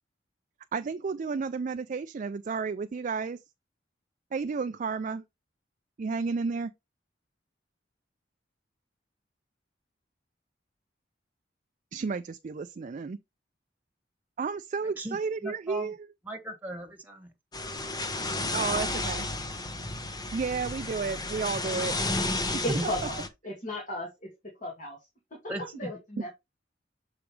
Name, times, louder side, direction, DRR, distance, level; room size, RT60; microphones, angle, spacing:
voice 1, 0.7-3.4 4.3-5.2 6.0-6.7 11.9-13.2 14.4-16.0 18.5-19.3 20.3-22.0 22.5-22.9 26.2-26.3, right 5 dB, 45° right, 0.4 m, -32 dB
voice 2, 15.4-15.9 16.3-17.3 22.7-22.8 25.5-25.9, right 1 dB, 10° right, 1.5 m, -36 dB
sound 1, 17.5-23.3, left 2 dB, 20° left, 0.9 m, -32 dB
voice 3, 22.6-24.3 24.6-25.0 25.6-26.3, left 1 dB, 45° left, 2.1 m, -35 dB
7.0 x 4.9 x 3.2 m
head